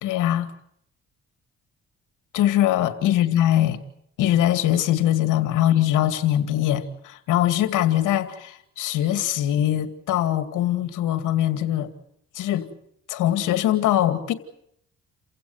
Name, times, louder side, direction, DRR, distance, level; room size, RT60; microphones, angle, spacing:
voice 1, 0.0-0.5 2.3-3.8 4.2-11.9 12.3-12.7 13.1-14.3, left 12 dB, 90° left, 2.5 m, -22 dB
29.5 x 16.5 x 9.6 m
cardioid pair, 90°, 30 cm